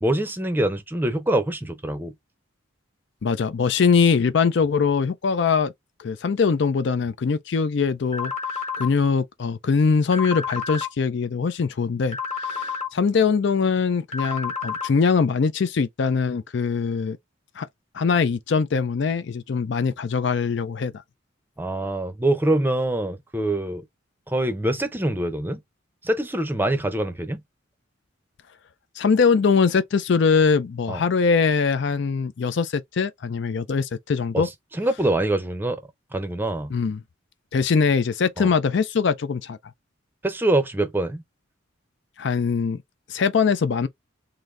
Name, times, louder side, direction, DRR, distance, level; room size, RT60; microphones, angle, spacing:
voice 1, 0.0-2.1 21.6-23.8 24.3-25.6 26.0-27.4 30.9-31.0 34.3-35.8 36.1-36.7 38.4-38.5 40.2-41.2, right 1 dB, 10° right, 0.6 m, -24 dB
voice 2, 3.2-5.7 6.0-8.3 8.8-17.2 17.6-17.7 17.9-20.9 29.0-34.5 36.7-37.0 37.5-39.6 42.2-42.8 43.1-43.9, left 5 dB, 60° left, 0.4 m, -22 dB
sound 1, 8.1-8.9 10.1-10.9 12.1-12.9 14.1-14.9, left 5 dB, 35° left, 1.2 m, -29 dB
3.8 x 2.6 x 3.2 m
head